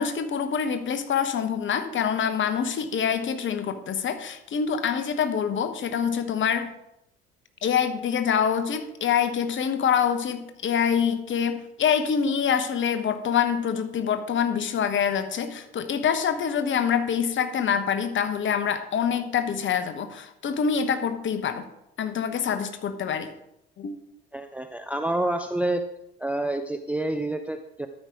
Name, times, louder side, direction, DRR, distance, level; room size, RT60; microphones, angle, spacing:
voice 1, 0.0-6.7 7.6-21.6 22.0-23.3 23.8-23.9, left 7 dB, 35° left, 10 dB, 1.1 m, -25 dB
voice 2, 24.3-25.8 26.2-27.9, right 1 dB, 5° right, 8 dB, 0.6 m, -28 dB
13.0 x 5.3 x 4.6 m, 0.83 s
figure-of-eight pair, 55°, 32 cm